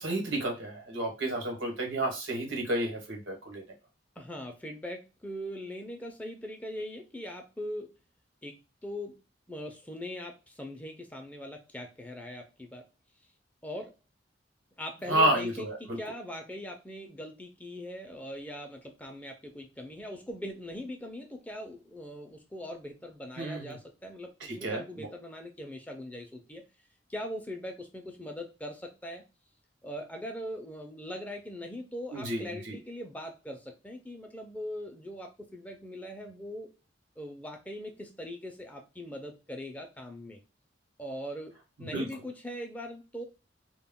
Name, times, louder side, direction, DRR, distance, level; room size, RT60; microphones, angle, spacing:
voice 1, 0.0-3.6 15.1-16.0 23.4-23.7 24.4-25.1 32.1-32.8 41.9-42.0, right 1 dB, 85° right, 2 dB, 1.0 m, -31 dB
voice 2, 4.2-7.9 8.4-9.2 9.5-12.8 13.6-13.9 14.8-26.6 27.1-29.2 29.8-36.7 37.2-40.4 41.0-43.2, left 1 dB, 10° left, 3 dB, 0.4 m, -41 dB
2.1 x 2.1 x 3.5 m, 0.28 s
head